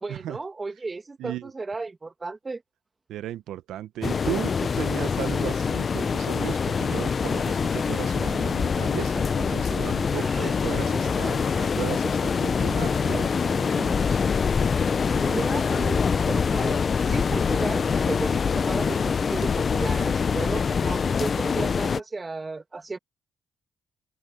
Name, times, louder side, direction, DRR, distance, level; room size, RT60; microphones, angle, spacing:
voice 1, 0.0-2.6 10.2-11.2 13.1-13.3 15.2-23.0, right 3 dB, 25° right, 2.1 m, -34 dB
voice 2, 1.2-1.5 3.1-14.2, right 12 dB, 80° right, 0.6 m, -35 dB
sound 1, 4.0-22.0, left 6 dB, 40° left, 0.5 m, -24 dB
open air
cardioid pair, 90°, 0 cm